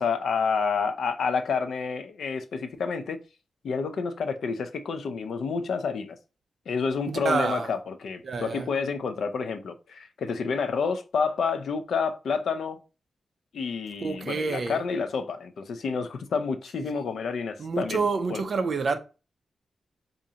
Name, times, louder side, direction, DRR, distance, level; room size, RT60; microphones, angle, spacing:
voice 1, 0.0-3.2 3.6-6.2 6.7-12.8 13.5-18.0 18.3-18.4, left 5 dB, 70° left, 0.4 m, -29 dB
voice 2, 7.1-7.7 8.2-8.7 14.0-14.8 16.8-17.1 17.6-19.0, right 4 dB, 45° right, 0.4 m, -28 dB
4.9 x 2.5 x 2.7 m
wide cardioid pair, 180°, 0 cm